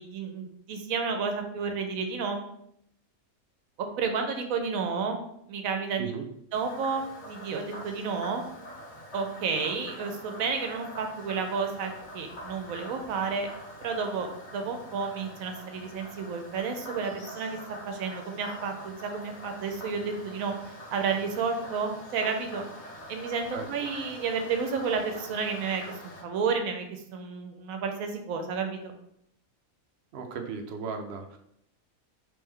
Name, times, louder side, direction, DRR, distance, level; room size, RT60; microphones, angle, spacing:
voice 1, 0.0-2.4 3.8-5.2 5.5-6.1 6.5-8.4 9.1-13.5 13.8-17.6 17.9-22.6 23.1-28.9, right 5 dB, 80° right, 5 dB, 1.0 m, -31 dB
Frog, 6.5-26.2, left 1 dB, 55° left, 1.4 m, -44 dB
voice 2, 30.1-31.4, right 5 dB, 60° right, 4 dB, 0.7 m, -36 dB
3.3 x 3.3 x 3.6 m, 0.75 s
omnidirectional pair, 1.5 m